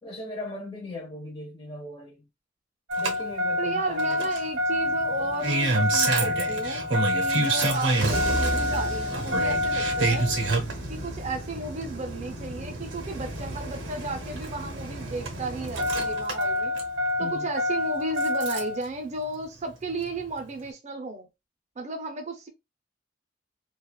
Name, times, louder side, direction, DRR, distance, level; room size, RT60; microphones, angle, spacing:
voice 1, 0.0-2.2 3.0-4.3 17.2-17.5, left 1 dB, 25° left, 0.7 m, -38 dB
Engine starting, 2.9-18.8 20.1-20.2, equal, 80° right, 0.8 m, -27 dB
voice 2, 3.6-10.3 10.9-16.7 17.2-21.3 21.8-22.5, right 2 dB, 40° right, 0.5 m, -34 dB
3.0 x 2.3 x 2.3 m
head